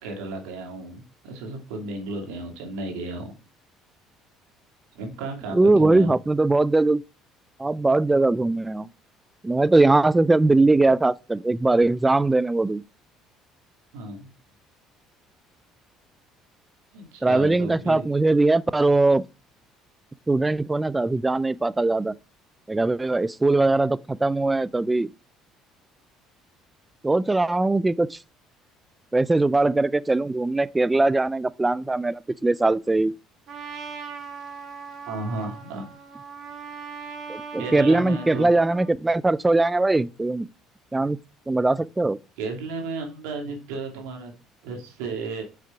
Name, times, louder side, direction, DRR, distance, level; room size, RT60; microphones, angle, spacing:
voice 1, 0.0-3.3 4.9-6.1 13.9-14.3 16.9-18.1 35.1-35.9 37.6-38.5 42.4-44.3 44.6-45.4, right 3 dB, 85° right, 2.5 m, -33 dB
voice 2, 5.5-7.0 7.6-8.9 9.4-12.8 17.2-19.2 20.3-22.1 22.7-25.1 27.0-28.2 29.1-33.1 37.3-40.5 40.9-41.2 41.5-42.2, right 2 dB, 15° right, 0.3 m, -21 dB
Trumpet, 33.5-38.9, right 5 dB, 55° right, 2.0 m, -39 dB
6.5 x 5.0 x 4.6 m
supercardioid pair, 90°, 0 cm